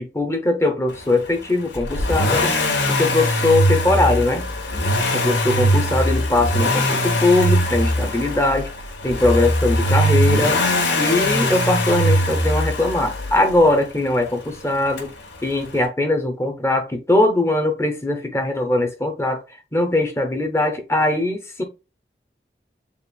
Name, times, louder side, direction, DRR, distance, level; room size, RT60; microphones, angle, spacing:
voice 1, 0.0-2.6 2.9-4.5 5.1-8.7 9.0-10.6 11.0-15.1 15.4-19.4 19.7-21.6, left 2 dB, 15° left, 0.8 m, -20 dB
Accelerating revving vroom, 1.7-13.7 15.0-15.1, equal, 90° left, 1.2 m, -21 dB
7.1 x 2.5 x 2.3 m
head